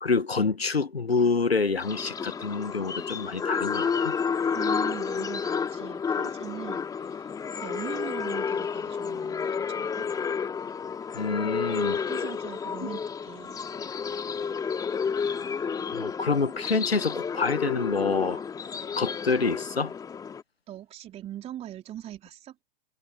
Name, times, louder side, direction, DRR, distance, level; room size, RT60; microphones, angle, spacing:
voice 1, 0.0-4.2 11.1-12.0 15.9-18.4 19.0-19.9, left 4 dB, 85° left, 1.6 m, -27 dB
sound 1, 1.8-20.4, left 6 dB, 10° left, 2.6 m, -31 dB
voice 2, 4.5-10.1 11.4-11.6 11.9-13.6 20.7-22.6, right 12 dB, 20° right, 3.3 m, -41 dB
figure-of-eight pair, 115°, 30 cm